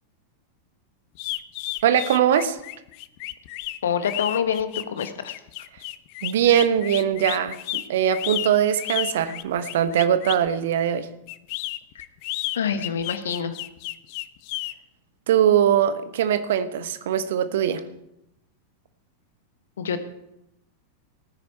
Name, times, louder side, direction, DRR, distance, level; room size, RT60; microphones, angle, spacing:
sound 1, 1.1-10.5 11.3-14.7, left 18 dB, 45° left, 0.6 m, -32 dB
voice 1, 1.8-2.6 6.2-11.1 15.3-17.8, right 9 dB, 55° right, 12 dB, 1.1 m, -21 dB
voice 2, 3.8-5.4 12.5-13.5 19.8-20.0, left 7 dB, 65° left, 10 dB, 1.2 m, -26 dB
18.5 x 9.7 x 4.5 m, 0.83 s
figure-of-eight pair, 90°, 0 cm